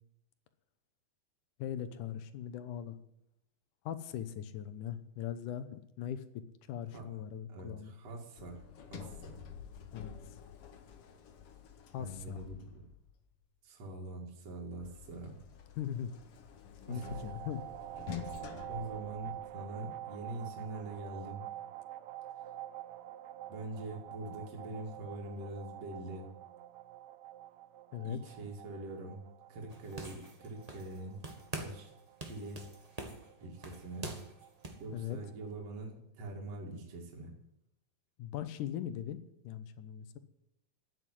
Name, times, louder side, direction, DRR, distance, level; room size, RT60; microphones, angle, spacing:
voice 1, 1.6-3.0 3.9-6.2 6.7-7.9 9.9-10.1 11.9-12.4 15.8-16.1 16.9-17.6 27.9-28.2 34.9-35.2 38.2-40.2, left 10 dB, 85° left, 11 dB, 2.5 m, -40 dB
voice 2, 7.5-8.6 8.9-9.4 12.0-12.8 13.6-15.3 16.9-17.2 18.7-21.4 23.5-26.3 28.0-29.2 29.5-31.2 31.5-31.9 32.2-32.6 33.4-34.1 34.8-37.3, right 2 dB, 55° right, -1 dB, 3.5 m, -43 dB
Sliding door, 8.4-13.2 14.8-19.8, left 8 dB, 60° left, 1.9 m, -49 dB
sound 1, 16.9-35.5, right 13 dB, 75° right, 1.7 m, -48 dB
sound 2, 29.7-31.0 31.2-31.9 32.2-34.8, right 2 dB, 25° right, 0.7 m, -44 dB
12.5 x 9.7 x 10.0 m, 0.82 s
omnidirectional pair, 3.6 m